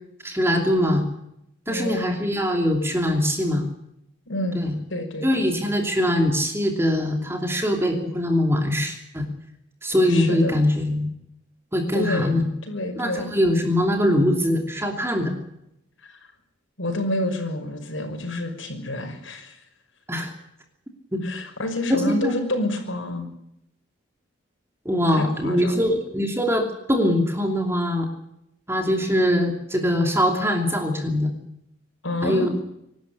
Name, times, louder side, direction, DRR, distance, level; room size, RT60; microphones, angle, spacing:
voice 1, 0.2-1.1 1.7-3.6 4.5-4.7 5.2-9.3 9.8-11.1 11.7-12.5 12.9-15.3 20.1-20.3 21.1-21.2 21.9-22.3 24.8-28.1 28.7-31.3 32.2-32.5, equal, 10° right, 3 dB, 2.8 m, -22 dB
voice 2, 1.7-2.1 4.3-5.5 10.1-10.6 11.9-12.4 12.6-13.3 16.0-16.2 16.8-19.6 21.2-23.3 25.1-25.9 32.0-32.5, left 1 dB, 75° left, 5 dB, 5.8 m, -28 dB
25.0 x 12.5 x 9.9 m, 0.80 s
head